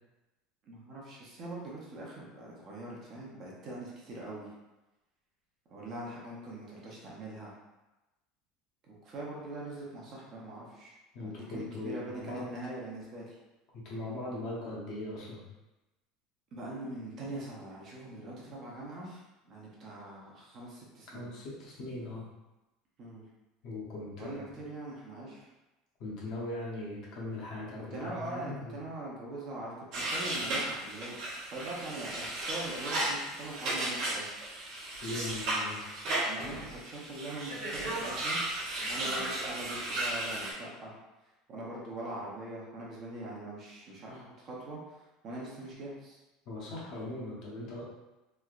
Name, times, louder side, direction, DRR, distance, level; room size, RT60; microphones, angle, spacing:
voice 1, 0.7-4.5 5.7-7.6 8.9-10.9 11.2-13.4 16.5-21.3 23.0-23.2 24.2-25.5 27.9-34.3 36.2-38.4 38.8-40.9 41.5-45.0 45.2-46.2, right 2 dB, 30° right, -4 dB, 0.7 m, -42 dB
voice 2, 11.1-12.5 13.7-15.4 21.1-22.2 23.6-24.3 26.0-28.8 35.0-35.9 46.5-47.8, left 2 dB, 45° left, -4 dB, 0.8 m, -39 dB
sound 1, 29.9-40.5, right 1 dB, 50° right, 1.0 m, -35 dB
3.2 x 2.8 x 2.4 m, 1.0 s
cardioid pair, 170°, 0 cm